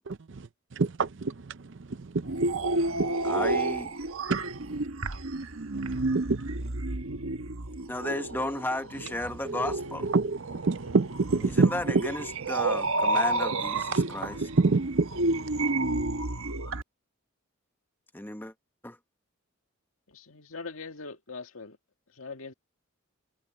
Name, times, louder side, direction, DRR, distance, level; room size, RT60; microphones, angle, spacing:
voice 1, 0.0-3.1 4.3-4.8 5.7-6.7 9.4-12.0 13.9-15.7, right 4 dB, 60° right, 0.6 m, -28 dB
sound 1, 2.2-16.8, right 2 dB, 85° right, 1.3 m, -31 dB
voice 2, 3.2-4.0 7.9-10.1 11.4-14.4 18.1-18.5 18.8-19.0, left 1 dB, 10° left, 1.2 m, -34 dB
voice 3, 20.1-21.8 22.1-22.5, left 4 dB, 85° left, 1.9 m, -41 dB
head